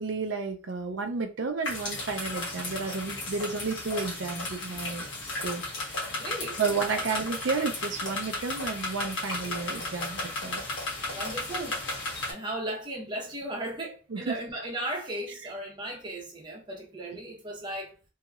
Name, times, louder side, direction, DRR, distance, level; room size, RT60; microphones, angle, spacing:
voice 1, 0.0-5.1 5.4-5.6 6.6-10.6 14.1-14.4, right 4 dB, 75° right, 0.5 m, -32 dB
sound 1, 1.6-12.3, left 2 dB, 75° left, 1.2 m, -34 dB
voice 2, 6.1-7.0 11.1-11.8 12.3-17.9, right 1 dB, 25° right, 1.0 m, -36 dB
2.9 x 2.8 x 2.4 m
head